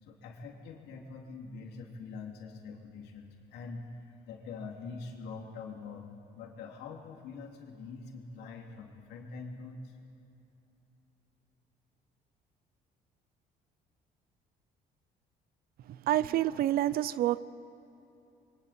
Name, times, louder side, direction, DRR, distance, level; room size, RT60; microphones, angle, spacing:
voice 1, 0.0-9.9, left 4 dB, 80° left, 1 dB, 2.9 m, -44 dB
voice 2, 16.1-17.4, right 13 dB, 65° right, 18 dB, 0.6 m, -27 dB
27.5 x 23.0 x 4.4 m, 2.9 s
cardioid pair, 110°, 17 cm